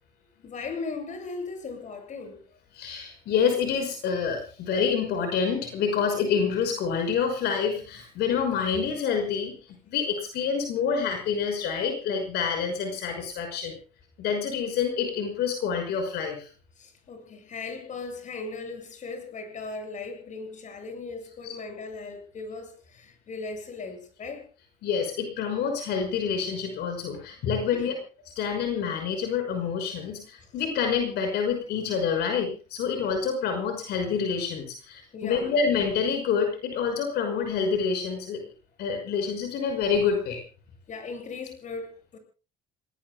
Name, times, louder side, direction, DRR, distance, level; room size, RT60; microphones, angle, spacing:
voice 1, 0.4-2.5 16.8-24.5 27.7-27.9 35.1-35.5 40.9-42.2, left 4 dB, 45° left, 7.7 m, -38 dB
voice 2, 2.7-9.5 9.9-13.7 14.2-16.4 21.4-21.5 24.8-27.9 28.4-38.4 38.8-40.4, left 6 dB, 75° left, 6.0 m, -27 dB
29.5 x 20.0 x 2.3 m
cardioid pair, 110°, 17 cm